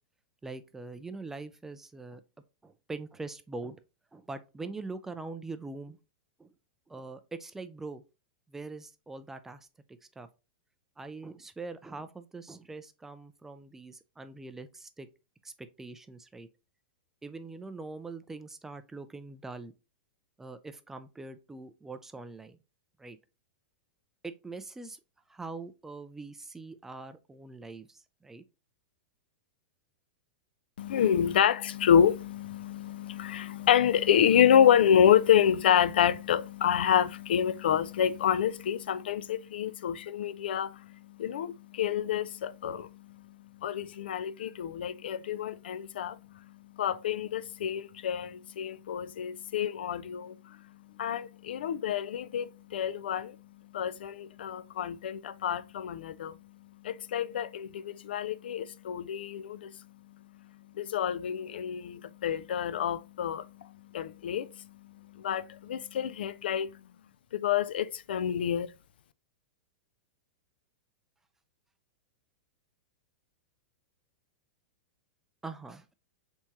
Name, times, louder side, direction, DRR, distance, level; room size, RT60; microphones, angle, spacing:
voice 1, 0.4-2.2 2.6-3.8 4.1-6.0 6.4-6.5 6.9-8.0 8.5-10.3 11.0-15.1 15.4-16.5 17.2-19.7 20.4-22.6 23.0-23.2 24.2-25.0 25.3-28.4 75.4-75.9, right 3 dB, 5° right, 0.3 m, -43 dB
voice 2, 30.8-66.8 67.3-68.7, left 9 dB, 85° left, 0.3 m, -28 dB
4.3 x 3.5 x 2.8 m
supercardioid pair, 150°, 5 cm